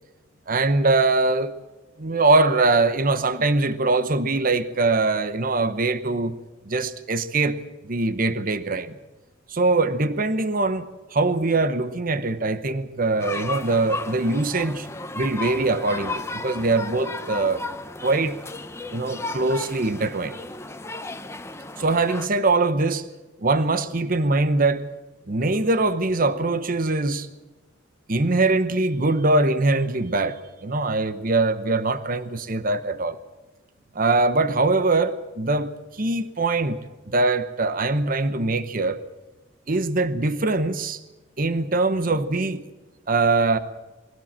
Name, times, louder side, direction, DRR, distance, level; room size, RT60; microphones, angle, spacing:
voice 1, 0.5-1.5 2.0-6.4 6.7-7.6 7.8-9.0 9.5-14.9 15.1-17.6 18.0-18.4 18.9-20.4 21.8-23.1 23.4-24.8 25.3-27.3 28.1-33.2 33.9-36.8 37.1-39.0 39.7-41.0 41.4-42.7 43.1-43.6, right 3 dB, 50° right, 1.0 m, -22 dB
sound 1, 13.2-22.3, left 3 dB, 15° left, 1.0 m, -34 dB
22.5 x 16.5 x 7.4 m
head